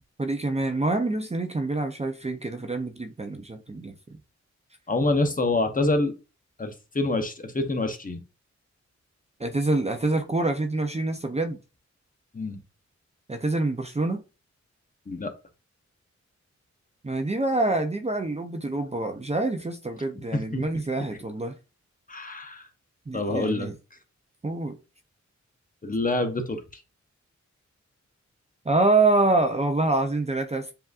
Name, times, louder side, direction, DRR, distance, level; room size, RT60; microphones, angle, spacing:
voice 1, 0.2-4.2 9.4-11.6 13.3-14.2 17.0-21.5 23.1-23.7 24.4-24.8 28.7-30.7, right 2 dB, 20° right, 0.5 m, -26 dB
voice 2, 4.9-6.1 6.6-8.2 12.3-12.6 15.1-15.3 20.3-20.6 22.1-22.7 23.1-23.7 25.8-26.8, left 2 dB, 30° left, 0.7 m, -26 dB
7.2 x 2.5 x 2.4 m
wide cardioid pair, 75°, 29 cm